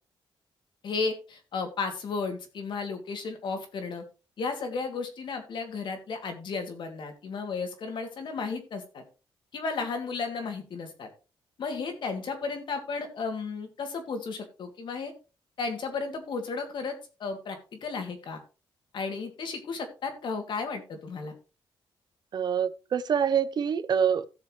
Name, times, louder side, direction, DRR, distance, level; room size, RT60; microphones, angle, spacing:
voice 1, 0.8-4.0 4.4-9.0 9.5-11.1 11.6-15.1 15.6-18.4 18.9-21.3, left 4 dB, 60° left, 2.7 m, -34 dB
voice 2, 22.3-24.3, right 7 dB, 50° right, 0.7 m, -26 dB
16.5 x 6.7 x 3.2 m
cardioid pair, 135°, 9 cm